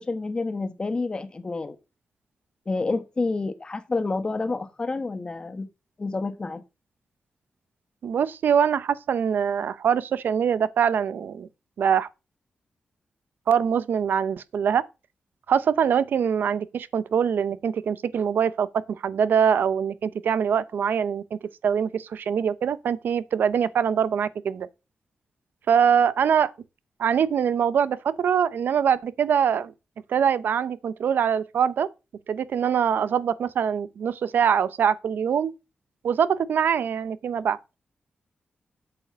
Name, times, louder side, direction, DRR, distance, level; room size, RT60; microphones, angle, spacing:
voice 1, 0.0-1.8 2.7-5.7 6.0-6.6, left 3 dB, 30° left, 1.3 m, -29 dB
voice 2, 8.0-11.5 11.8-12.1 13.5-14.8 15.5-24.7 25.7-26.5 27.0-29.7 30.1-31.9 32.3-35.5 36.0-37.6, right 7 dB, 80° right, 0.8 m, -23 dB
8.5 x 7.7 x 6.3 m
wide cardioid pair, 150°, 3 cm